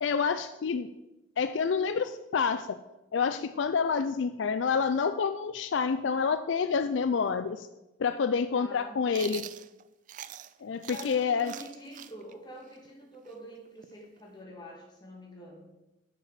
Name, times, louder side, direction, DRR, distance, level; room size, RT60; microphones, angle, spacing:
voice 1, 0.0-0.9 1.4-2.8 3.1-7.7 8.0-9.4 10.6-11.5, left 5 dB, 70° left, 11 dB, 0.4 m, -28 dB
voice 2, 8.5-9.5 10.8-15.6, equal, 20° left, -2 dB, 2.4 m, -46 dB
Chewing mastication, 9.1-10.5 10.8-14.4, right 11 dB, 40° right, 0.3 m, -44 dB
7.1 x 7.0 x 7.5 m, 0.97 s
head